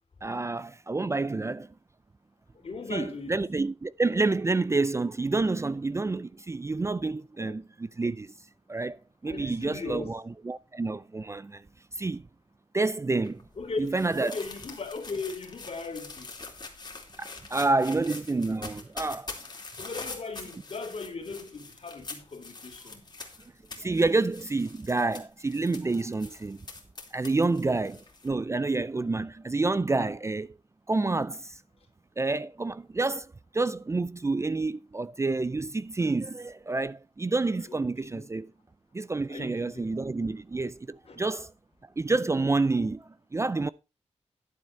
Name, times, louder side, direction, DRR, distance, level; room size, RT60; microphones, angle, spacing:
voice 1, 0.2-1.7 2.9-8.3 8.7-11.6 12.0-12.3 12.7-13.4 13.8-14.4 17.2-19.3 23.8-26.6 27.1-30.5 30.9-31.6 32.2-33.3 33.5-38.5 38.9-41.5 42.0-43.7, right 3 dB, 25° right, 0.4 m, -28 dB
voice 2, 2.6-3.4 7.4-7.6 9.3-10.1 13.6-13.8 14.2-16.3 19.8-23.0 27.5-27.7 37.6-38.3 39.3-39.9 41.0-41.2, left 4 dB, 55° left, 3.3 m, -38 dB
sound 1, 13.2-28.3, left 3 dB, 40° left, 3.1 m, -44 dB
11.5 x 7.5 x 4.5 m
wide cardioid pair, 95°, 12 cm